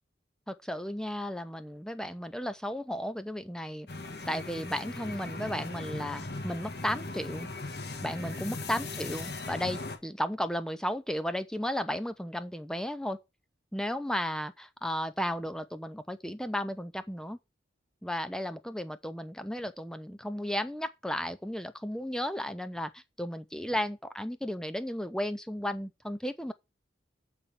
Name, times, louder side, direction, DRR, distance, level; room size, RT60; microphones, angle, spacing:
voice 1, 0.5-3.9 4.3-7.5 8.0-13.2 13.7-17.4 18.0-26.5, equal, 5° left, 0.5 m, -34 dB
sound 1, 3.9-10.0, left 2 dB, 60° left, 1.6 m, -39 dB
8.5 x 4.2 x 7.2 m
head